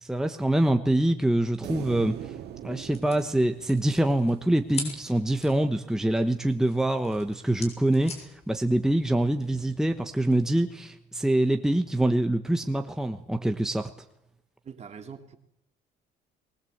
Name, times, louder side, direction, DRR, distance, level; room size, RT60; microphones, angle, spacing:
voice 1, 0.0-2.3 2.6-13.9, right 1 dB, 5° right, 6 dB, 1.1 m, -25 dB
sound 1, 1.6-5.0, right 11 dB, 75° right, 2.1 m, -41 dB
sound 2, 2.1-10.6, left 3 dB, 40° left, 6.6 m, -45 dB
voice 2, 14.6-15.4, right 6 dB, 40° right, 6 dB, 2.8 m, -43 dB
22.0 x 20.5 x 8.0 m, 0.80 s
cardioid pair, 110°, 17 cm